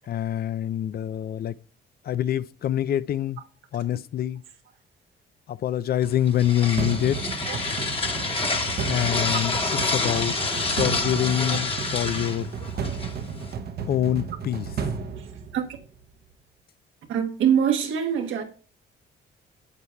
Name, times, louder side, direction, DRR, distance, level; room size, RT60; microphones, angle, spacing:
voice 1, 0.1-1.5 2.0-3.4 3.7-4.4 5.5-7.2 8.9-10.3 10.6-12.5 13.9-14.7, left 11 dB, 50° left, 0.4 m, -25 dB
sound 1, 6.0-13.5, left 3 dB, 30° left, 1.2 m, -28 dB
sound 2, 6.8-16.0, right 6 dB, 50° right, 0.8 m, -33 dB
voice 2, 15.2-15.7 17.1-18.4, right 8 dB, 80° right, 1.2 m, -25 dB
11.0 x 7.1 x 2.2 m
cardioid pair, 90°, 20 cm